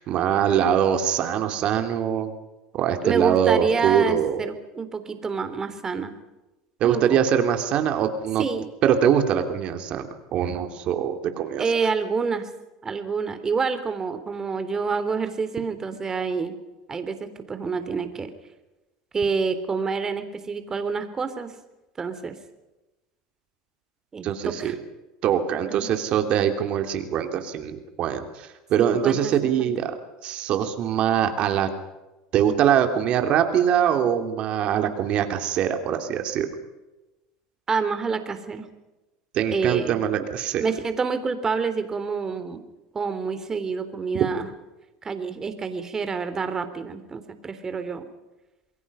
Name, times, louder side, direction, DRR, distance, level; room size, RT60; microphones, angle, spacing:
voice 1, 0.0-2.3 2.7-4.4 6.8-8.4 8.8-11.6 24.2-24.7 25.2-30.0 30.2-31.7 32.3-36.5 39.3-40.6, right 9 dB, 50° right, 6 dB, 3.1 m, -23 dB
voice 2, 3.0-6.1 6.8-7.2 8.4-8.7 11.6-12.5 12.8-16.5 16.9-18.3 19.1-21.5 22.0-22.4 24.1-24.7 25.8-25.9 28.8-29.7 37.7-38.7 39.5-40.0 40.6-42.6 42.9-44.5 45.0-48.0, right 5 dB, 25° right, 10 dB, 3.3 m, -28 dB
28.5 x 22.0 x 5.7 m, 1.1 s
supercardioid pair, 110°, 2 cm